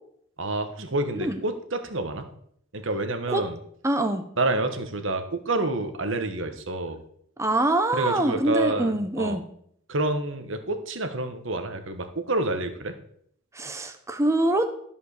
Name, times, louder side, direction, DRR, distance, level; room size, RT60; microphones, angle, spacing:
voice 1, 0.4-2.3 2.7-3.6 4.4-7.0 7.9-9.4 9.9-13.0, right 2 dB, 60° right, 8 dB, 1.4 m, -28 dB
voice 2, 3.8-4.2 7.4-9.4 13.5-14.7, right 1 dB, 15° right, 7 dB, 1.0 m, -24 dB
13.5 x 5.4 x 6.7 m, 0.67 s
head